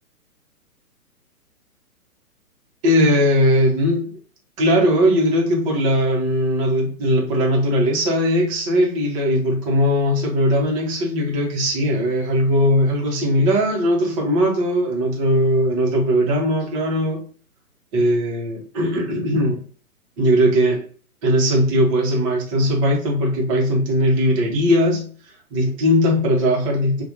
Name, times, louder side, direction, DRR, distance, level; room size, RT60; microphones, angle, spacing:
voice 1, 2.8-4.1 4.6-17.3 17.9-19.6 20.2-20.9 21.2-25.1 25.5-27.0, equal, 20° right, 1.1 m, -19 dB
5.6 x 2.5 x 2.6 m
figure-of-eight pair, 125°, 44 cm